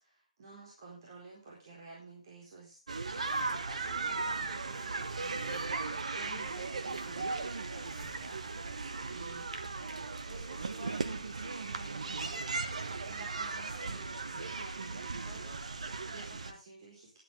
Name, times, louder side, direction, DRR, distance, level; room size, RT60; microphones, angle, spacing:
voice 1, 0.0-8.6 9.0-9.5 10.2-17.2, right 3 dB, 35° right, -3 dB, 4.2 m, -52 dB
sound 1, 2.9-16.5, right 3 dB, 60° right, 1.4 m, -37 dB
Zipper (clothing), 3.0-3.7 4.3-4.9 5.2-5.9 6.4-7.3 7.7-8.6, left 4 dB, 20° left, 2.9 m, -59 dB
11.5 x 11.5 x 3.4 m, 0.30 s
figure-of-eight pair, 150°, 4 cm